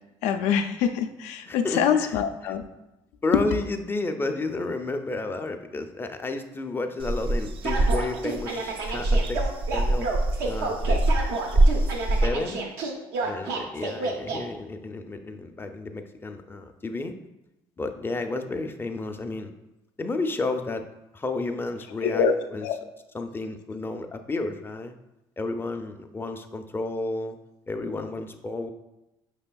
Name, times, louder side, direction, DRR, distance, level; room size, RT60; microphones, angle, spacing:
voice 1, 0.2-2.6 22.0-22.3 22.6-22.7, left 7 dB, 75° left, 7 dB, 0.4 m, -24 dB
voice 2, 1.5-2.5 3.2-9.4 9.7-10.1 10.4-11.0 11.7-12.7 13.2-17.2 17.8-19.5 20.0-20.9 21.1-22.7 23.1-24.9 25.4-27.4 27.7-28.7, left 2 dB, 20° left, 7 dB, 0.5 m, -32 dB
sound 1, 7.0-12.3, right 1 dB, 50° right, 0.4 m, -24 dB
sound 2, 7.6-14.4, right 3 dB, 85° right, 0.7 m, -30 dB
5.3 x 3.4 x 2.3 m, 0.95 s
supercardioid pair, 70°, 12 cm